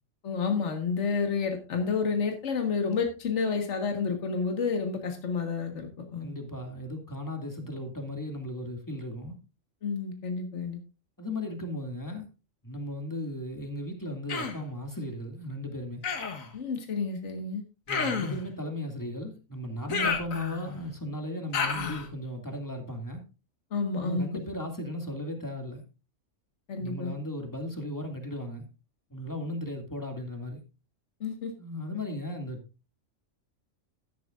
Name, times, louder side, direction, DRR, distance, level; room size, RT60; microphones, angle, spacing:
voice 1, 0.2-6.4 9.8-10.8 16.5-17.6 20.0-20.1 23.7-24.4 26.7-27.1 31.2-31.5, left 5 dB, 60° left, 1.8 m, -30 dB
voice 2, 6.2-9.4 11.2-12.3 12.6-16.0 17.9-23.2 24.0-25.8 26.8-28.7 29.1-30.6 31.6-32.6, left 1 dB, 15° left, 2.1 m, -36 dB
Human voice, 14.3-14.7 16.0-16.5 17.9-18.5 19.9-20.8 21.5-22.1, left 5 dB, 85° left, 1.8 m, -30 dB
14.0 x 10.5 x 2.5 m
omnidirectional pair, 1.4 m